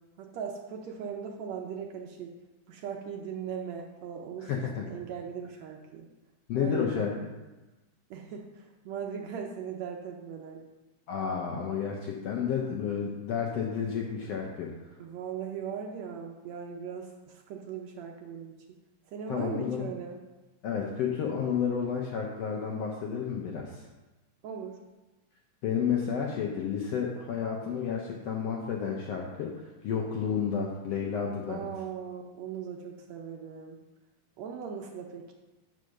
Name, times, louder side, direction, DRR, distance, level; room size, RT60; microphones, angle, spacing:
voice 1, 0.2-2.3 2.7-4.5 4.8-6.1 6.5-7.1 8.1-10.6 15.0-18.6 19.1-20.2 24.4-24.8 31.5-33.8 34.4-35.3, right 7 dB, 75° right, 2 dB, 1.7 m, -39 dB
voice 2, 4.4-4.9 6.5-7.1 11.1-14.9 19.3-19.9 20.6-23.8 25.6-31.7, left 7 dB, 75° left, 0 dB, 1.4 m, -31 dB
7.7 x 4.9 x 6.4 m, 1.1 s
omnidirectional pair, 3.7 m